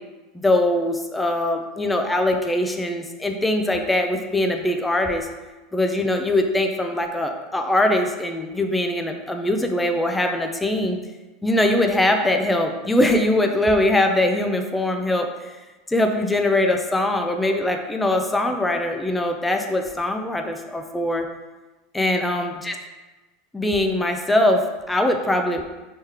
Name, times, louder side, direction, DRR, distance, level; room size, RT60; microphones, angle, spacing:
voice 1, 0.3-5.3 5.7-11.0 11.4-15.5 15.9-21.2 21.9-22.8 23.5-25.6, left 1 dB, 10° left, 4 dB, 0.5 m, -22 dB
3.5 x 3.2 x 4.4 m, 1.1 s
supercardioid pair, 105°, 0 cm